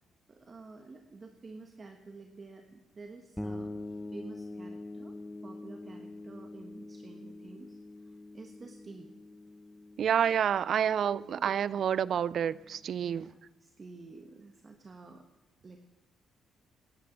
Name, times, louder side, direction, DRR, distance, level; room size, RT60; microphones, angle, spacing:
voice 1, 0.3-9.1 11.0-11.5 13.0-15.3 15.6-15.8, right 3 dB, 35° right, 1.3 m, -50 dB
sound 1, 3.4-13.0, left 2 dB, ahead, 1.1 m, -45 dB
voice 2, 10.0-13.3, right 8 dB, 60° right, 0.4 m, -28 dB
17.5 x 10.5 x 6.1 m
cardioid pair, 90°, 0 cm